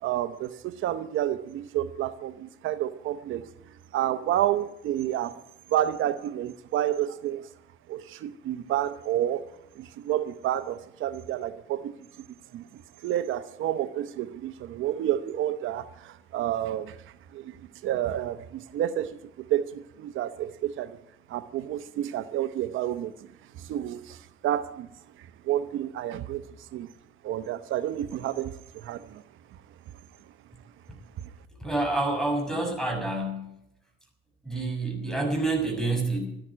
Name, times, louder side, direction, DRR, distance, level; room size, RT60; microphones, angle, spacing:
voice 1, 0.0-3.5 3.9-5.4 5.7-7.4 7.9-9.4 9.8-11.9 12.5-17.0 17.3-17.6 17.8-21.0 21.3-23.1 23.6-24.9 25.4-26.4 26.7-26.9 27.2-29.2, right 12 dB, 85° right, 11 dB, 0.9 m, -30 dB
voice 2, 31.6-33.5 34.4-36.2, right 2 dB, 5° left, 3 dB, 6.3 m, -28 dB
13.0 x 11.0 x 9.9 m, 0.78 s
cardioid pair, 90°, 20 cm